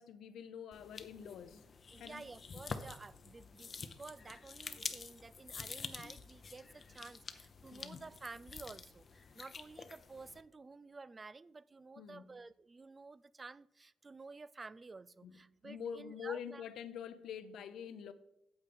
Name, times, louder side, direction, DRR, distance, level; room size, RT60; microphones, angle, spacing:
voice 1, 0.0-1.6 2.0-2.3 7.7-8.0 12.0-12.3 15.2-18.1, left 8 dB, 75° left, 0.7 m, -46 dB
sound 1, 0.7-10.4, left 5 dB, 40° left, 0.7 m, -48 dB
voice 2, 1.9-16.6, right 3 dB, 25° right, 0.3 m, -52 dB
8.6 x 7.9 x 4.2 m
cardioid pair, 90°, 0 cm